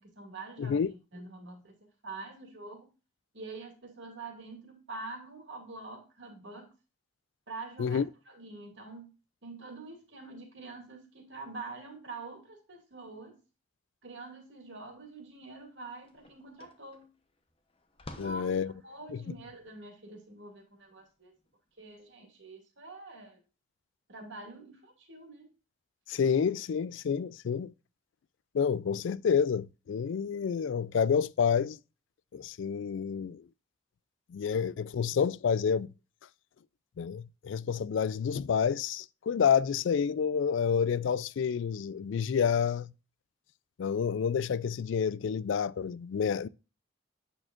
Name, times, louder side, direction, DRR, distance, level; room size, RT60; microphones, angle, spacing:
voice 1, 0.0-1.8 2.0-2.9 3.3-6.7 7.5-9.1 9.4-13.4 14.0-17.1 18.1-21.3 21.8-23.4 24.1-25.5, right 3 dB, 65° right, 2.4 m, -45 dB
voice 2, 0.6-0.9 7.8-8.1 18.2-18.7 19.1-19.2 26.1-27.7 28.5-31.8 32.3-33.5 34.3-35.9 37.0-42.9 43.8-46.5, left 7 dB, 70° left, 0.3 m, -29 dB
sound 1, 15.0-15.1 15.5-21.9, left 2 dB, 30° left, 0.9 m, -53 dB
8.8 x 6.4 x 2.5 m
head